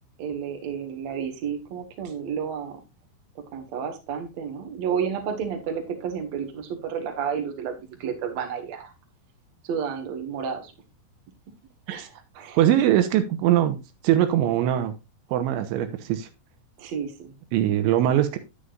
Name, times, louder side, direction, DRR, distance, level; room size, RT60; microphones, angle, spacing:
voice 1, 0.2-2.8 3.4-8.9 9.6-10.7 11.9-12.6 16.8-17.4, right 7 dB, 50° right, 2.2 m, -31 dB
voice 2, 12.6-13.8 14.0-14.9 15.3-16.3 17.5-18.4, right 11 dB, 80° right, 3.1 m, -21 dB
9.8 x 9.5 x 2.5 m
omnidirectional pair, 5.5 m